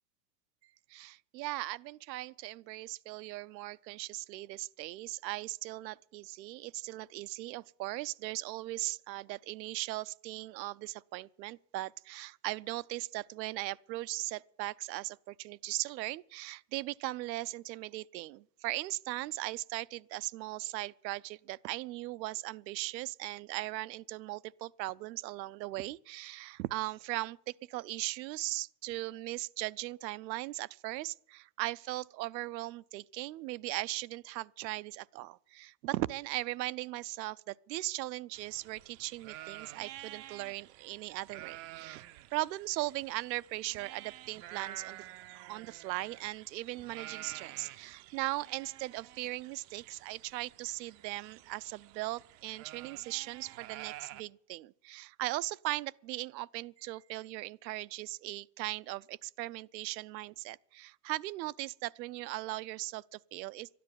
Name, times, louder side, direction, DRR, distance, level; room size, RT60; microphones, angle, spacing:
voice 1, 0.9-42.0 42.3-45.1 45.3-63.7, right 18 dB, 85° right, 0.6 m, -38 dB
sound 1, 38.3-54.2, right 15 dB, 35° right, 0.5 m, -50 dB
13.0 x 10.0 x 9.6 m
supercardioid pair, 130°, 49 cm